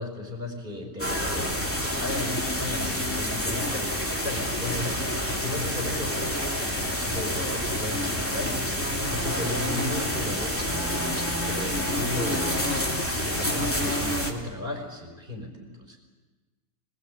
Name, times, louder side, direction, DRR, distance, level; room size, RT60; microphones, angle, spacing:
voice 1, 0.0-8.6 9.1-10.9 11.4-12.7 13.2-16.0, left 2 dB, 30° right, 2 dB, 4.9 m, -35 dB
sound 1, 1.0-14.3, equal, 5° left, 2.6 m, -28 dB
25.0 x 21.0 x 8.6 m, 1.3 s
omnidirectional pair, 1.8 m